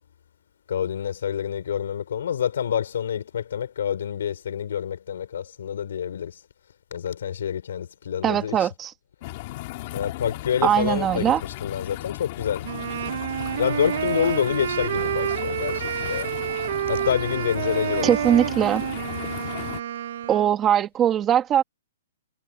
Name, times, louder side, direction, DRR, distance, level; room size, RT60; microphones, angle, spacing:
voice 1, 0.7-6.4 6.9-8.7 9.9-12.7 13.6-16.3 16.9-18.2, left 9 dB, 70° left, 5.1 m, -27 dB
voice 2, 8.2-8.9 10.6-11.4 18.0-18.8 20.3-21.6, right 10 dB, 15° right, 2.1 m, -21 dB
sound 1, 9.2-19.8, left 18 dB, 35° left, 3.0 m, -36 dB
Wind instrument woodwind instrument, 12.6-20.6, right 10 dB, 55° right, 0.8 m, -29 dB
hypercardioid pair, 170°, 0 cm